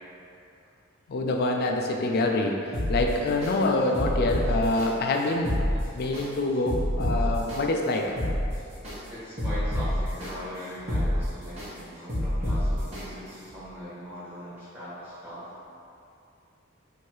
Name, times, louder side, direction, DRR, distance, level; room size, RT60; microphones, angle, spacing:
voice 1, 1.1-5.6 5.9-8.1, left 2 dB, 50° left, 2 dB, 0.4 m, -26 dB
sound 1, 2.7-3.5 3.9-4.9 5.3-6.2 6.7-7.6 8.0-8.9 9.4-10.3 10.7-11.7 12.1-13.0 13.5-13.6, equal, 30° right, 1.2 m, -27 dB
voice 2, 9.1-15.5, equal, 10° right, -12 dB, 1.4 m, -40 dB
3.1 x 2.7 x 4.5 m, 2.6 s
head